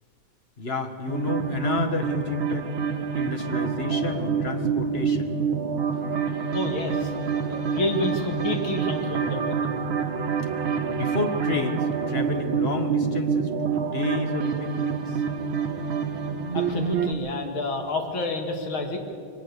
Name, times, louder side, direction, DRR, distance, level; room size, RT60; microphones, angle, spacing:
voice 1, 0.6-2.7 3.1-5.3 10.9-15.2, left 3 dB, 30° left, 6 dB, 1.6 m, -30 dB
sound 1, 1.1-17.1, right 6 dB, 75° right, 1.9 m, -27 dB
voice 2, 6.5-7.1 7.5-9.8 16.5-19.0, left 2 dB, 75° left, 3 dB, 3.1 m, -29 dB
22.5 x 19.0 x 6.8 m, 2.8 s
omnidirectional pair, 2.3 m